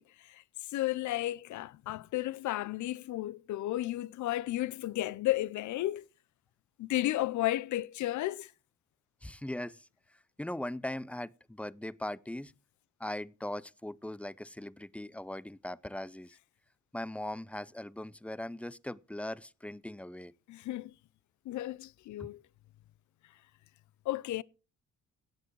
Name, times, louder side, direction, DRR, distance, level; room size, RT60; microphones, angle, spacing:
voice 1, 0.0-6.1 6.8-8.5 20.5-20.9 21.5-22.4 24.1-24.4, left 15 dB, 75° left, 0.6 m, -33 dB
voice 2, 9.2-9.9 10.4-12.5 13.0-16.4 16.9-20.3 22.2-22.3, left 1 dB, 5° left, 0.5 m, -40 dB
16.5 x 8.4 x 4.7 m
cardioid pair, 90°, 30 cm